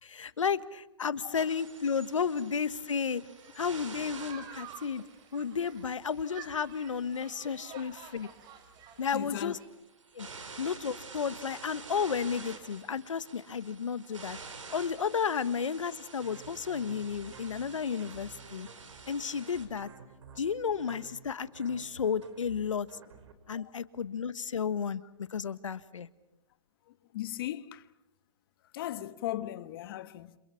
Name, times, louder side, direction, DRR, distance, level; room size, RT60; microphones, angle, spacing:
voice 1, 0.0-3.2 3.5-5.0 5.3-8.3 9.0-9.6 10.1-10.3 10.6-14.4 14.7-18.7 19.1-19.9 20.4-22.9 23.5-26.1, left 6 dB, 85° left, 1.4 m, -32 dB
sound 1, 1.3-19.7, right 4 dB, 90° right, 5.0 m, -49 dB
sound 2, 3.4-9.7, right 7 dB, 25° right, 3.1 m, -51 dB
voice 2, 9.1-9.6 10.2-10.3 23.5-23.7 27.1-27.8 28.7-30.4, left 14 dB, 45° left, 1.4 m, -37 dB
sound 3, 16.2-23.3, right 5 dB, 65° right, 4.5 m, -52 dB
28.5 x 28.0 x 5.8 m
hypercardioid pair, 140°, 16 cm